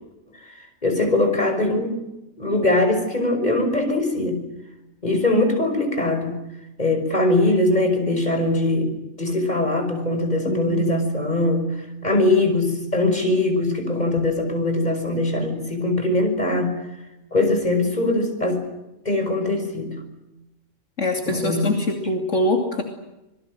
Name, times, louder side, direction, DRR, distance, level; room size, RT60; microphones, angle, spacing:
voice 1, 0.4-2.0 2.4-4.4 5.0-6.4 6.8-11.7 12.0-16.8 17.3-18.6 19.1-20.0 21.3-21.7, left 2 dB, 30° left, 6 dB, 5.8 m, -21 dB
voice 2, 10.5-10.9 21.0-22.8, left 2 dB, 65° left, 3 dB, 3.0 m, -23 dB
27.0 x 22.0 x 7.8 m, 0.95 s
omnidirectional pair, 1.4 m